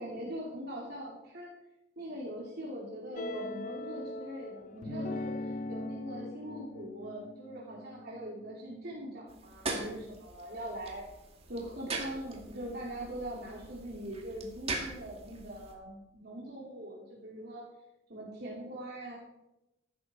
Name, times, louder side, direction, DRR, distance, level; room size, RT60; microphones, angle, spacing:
voice 1, 0.0-1.5 2.0-11.0 11.5-17.7 18.1-19.2, right 1 dB, 55° right, -5 dB, 3.1 m, -42 dB
sound 1, 3.2-9.2, left 2 dB, 40° left, 0.5 m, -41 dB
sound 2, 9.3-15.7, right 3 dB, 30° right, 2.3 m, -41 dB
15.0 x 12.0 x 4.5 m, 0.92 s
head